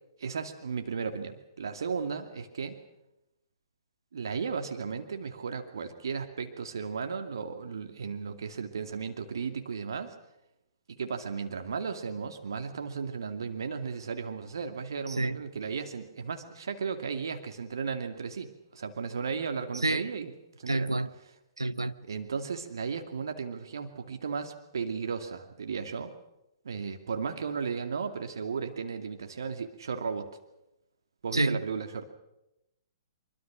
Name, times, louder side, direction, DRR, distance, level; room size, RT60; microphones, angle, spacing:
voice 1, 0.2-2.8 4.1-10.1 10.9-20.3 20.6-21.0 22.0-26.1 26.6-30.3 31.2-32.0, right 5 dB, 65° right, 2.4 m, -35 dB
voice 2, 15.1-15.4 19.8-20.0 20.7-21.1 21.6-21.9 31.3-31.6, right 2 dB, 85° right, 1.1 m, -28 dB
25.0 x 24.0 x 6.3 m
figure-of-eight pair, 120°, 2 cm